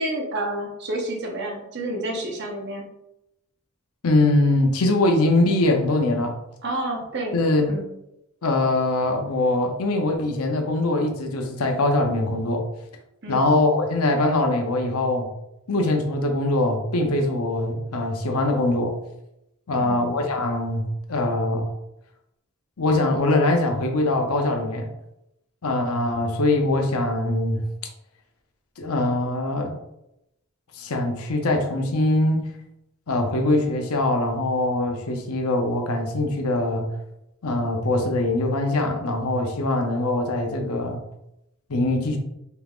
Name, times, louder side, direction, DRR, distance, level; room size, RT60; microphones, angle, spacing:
voice 1, 0.0-2.9 6.6-7.4 7.7-7.9 13.2-13.5 19.8-20.1, right 1 dB, 50° right, 0 dB, 0.8 m, -29 dB
voice 2, 4.0-6.3 7.3-7.8 8.4-12.7 13.3-15.3 15.7-18.9 19.7-21.7 22.8-24.9 25.6-27.6 28.8-29.8 30.8-32.4 33.1-36.9 37.4-41.0 41.7-42.2, left 2 dB, 85° left, 4 dB, 0.7 m, -22 dB
4.4 x 3.5 x 2.4 m, 0.86 s
head